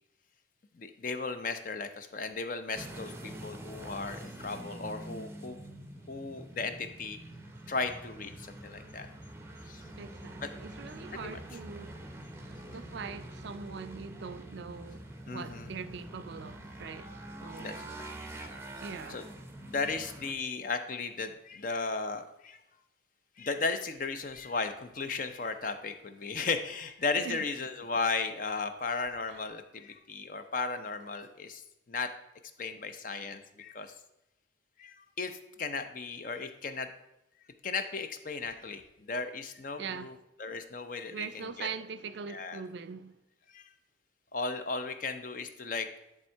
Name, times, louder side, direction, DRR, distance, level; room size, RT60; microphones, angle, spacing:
voice 1, 0.7-5.6 6.1-7.2 7.7-9.1 9.7-9.8 11.2-11.4 15.3-15.7 17.6-18.1 18.4-18.5 19.1-19.2 19.7-22.6 23.4-31.6 31.9-32.1 32.6-33.9 34.8-36.9 37.6-38.8 39.1-40.1 40.4-41.7 42.3-42.6 43.5-43.7 44.3-45.9, left 4 dB, 45° left, 0.6 m, -35 dB
sound 1, 2.7-20.3, right 1 dB, 15° right, 0.6 m, -45 dB
voice 2, 10.0-12.0 12.4-17.1 17.4-17.9 18.8-19.2 27.2-27.4 29.3-29.4 39.8-40.2 41.1-43.2, right 5 dB, 60° right, 0.4 m, -42 dB
10.5 x 3.6 x 4.4 m
head